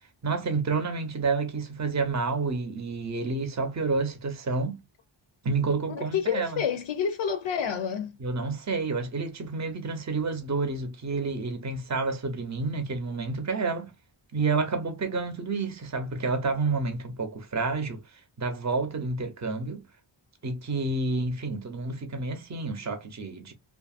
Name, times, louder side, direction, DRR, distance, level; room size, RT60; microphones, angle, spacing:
voice 1, 0.2-4.8 5.4-6.6 8.2-13.9 14.3-18.0 18.4-19.8 20.4-23.5, right 4 dB, 35° right, 0.7 m, -29 dB
voice 2, 5.9-8.2, left 7 dB, 70° left, 0.5 m, -29 dB
2.7 x 2.5 x 2.4 m
wide cardioid pair, 120°, 50 cm